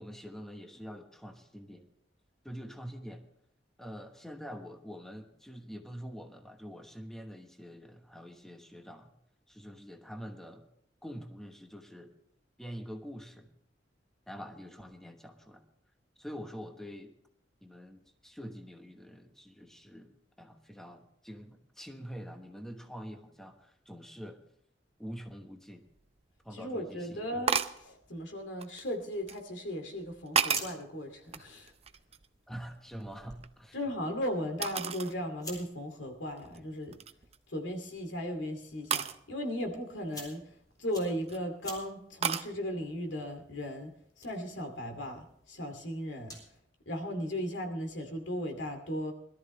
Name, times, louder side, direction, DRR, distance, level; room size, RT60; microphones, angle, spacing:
voice 1, 0.0-1.9 2.4-3.2 3.8-9.1 9.5-10.7 11.0-12.1 12.6-13.5 14.3-15.6 16.2-17.1 17.6-20.1 20.4-24.4 25.0-25.9 26.4-27.2 32.5-33.8, equal, 5° left, 4 dB, 1.2 m, -45 dB
sound 1, 26.0-26.1 27.5-27.8 28.6-29.4 30.0-30.8 31.3-32.4 32.7-34.0 34.6-35.2 35.6-35.7 36.4-36.6 36.9-37.4 38.9-39.2 40.9-41.4 42.2-42.5, right 7 dB, 35° right, 0.6 m, -33 dB
voice 2, 26.5-31.7 33.7-37.0 37.5-40.5 40.8-43.9 44.2-46.3 46.9-49.1, equal, 90° left, 4 dB, 2.5 m, -36 dB
sound 2, 30.2-46.6, equal, 20° left, 4.0 m, -52 dB
21.0 x 13.0 x 3.2 m, 0.71 s
head